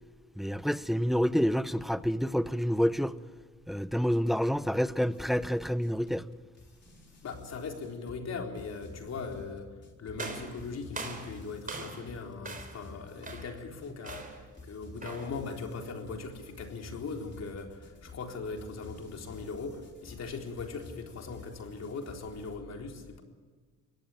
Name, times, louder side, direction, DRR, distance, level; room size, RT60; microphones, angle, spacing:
voice 1, 0.4-3.1 3.7-6.2, equal, ahead, 0.8 m, -28 dB
sound 1, 5.1-22.5, left 3 dB, 40° left, 4.6 m, -50 dB
voice 2, 7.2-9.7 10.0-23.2, left 4 dB, 60° left, 4.0 m, -40 dB
sound 2, 10.2-12.1 12.4-12.9 13.2-13.6 14.0-14.5 15.0-15.4, right 3 dB, 25° right, 4.1 m, -41 dB
22.5 x 18.0 x 9.2 m
cardioid pair, 90°, 30 cm